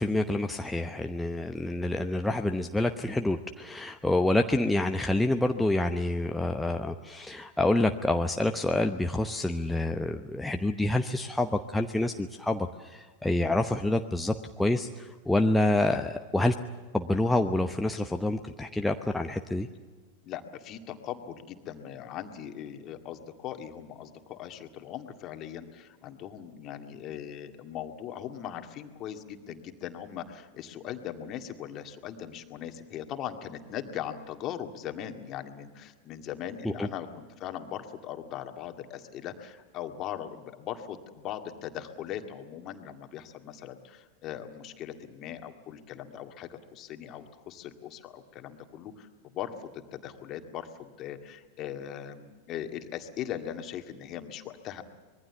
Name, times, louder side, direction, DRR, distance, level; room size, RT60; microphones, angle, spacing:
voice 1, 0.0-16.5 16.9-19.7 36.8-36.9, left 1 dB, 5° left, 5 dB, 0.9 m, -27 dB
voice 2, 20.2-54.8, left 10 dB, 35° left, 6 dB, 2.0 m, -40 dB
25.0 x 22.0 x 7.1 m, 1.4 s
figure-of-eight pair, 90°, 0 cm